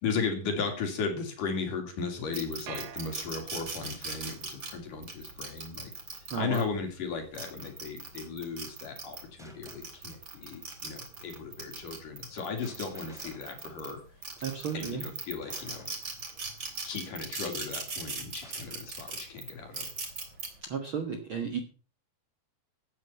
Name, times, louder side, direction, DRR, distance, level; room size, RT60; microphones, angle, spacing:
voice 1, 0.0-14.0 14.7-15.9 16.8-19.9, left 5 dB, 65° left, 4 dB, 4.4 m, -36 dB
sound 1, 2.3-6.6 7.2-9.2 9.6-13.9 14.2-20.5, right 4 dB, 35° right, 3.4 m, -39 dB
sound 2, 2.7-4.0, right 12 dB, 75° right, 2.5 m, -46 dB
voice 2, 6.3-6.6 14.4-15.1 20.6-21.6, right 6 dB, 55° right, 6 dB, 1.5 m, -33 dB
sound 3, 9.4-10.1 12.6-14.3 15.4-16.4 18.4-19.2, equal, ahead, 2.3 m, -56 dB
14.5 x 9.5 x 5.7 m, 0.37 s
omnidirectional pair, 4.1 m